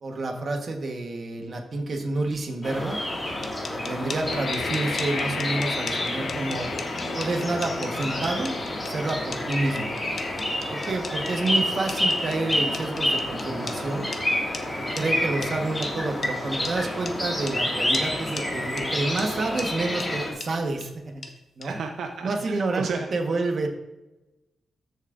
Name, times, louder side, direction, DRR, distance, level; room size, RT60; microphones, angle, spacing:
voice 1, 0.0-3.0 3.7-6.7 7.1-9.9 10.7-14.1 14.8-21.2 21.6-21.8 22.2-23.7, right 2 dB, 40° right, 3 dB, 1.3 m, -29 dB
sound 1, 2.6-20.3, left 1 dB, 10° left, 2.1 m, -29 dB
sound 2, 3.2-13.8 14.1-14.2 14.5-14.6 15.0-15.1 15.4-15.5 15.8-15.9 16.2-16.3 16.6-16.8 17.0-17.2 17.5-17.6 17.9-18.1 18.4-18.5 18.8-18.9 19.2-19.3 19.6-19.7 20.0-20.1 20.4-20.5 20.8-20.9 21.2-21.3 21.6-21.7, left 4 dB, 45° left, 0.9 m, -37 dB
sound 3, 4.3-16.1, left 5 dB, 90° left, 1.1 m, -38 dB
voice 2, 21.6-23.1, right 5 dB, 75° right, 4 dB, 0.8 m, -33 dB
14.0 x 7.2 x 2.6 m, 0.97 s
wide cardioid pair, 155°, 0 cm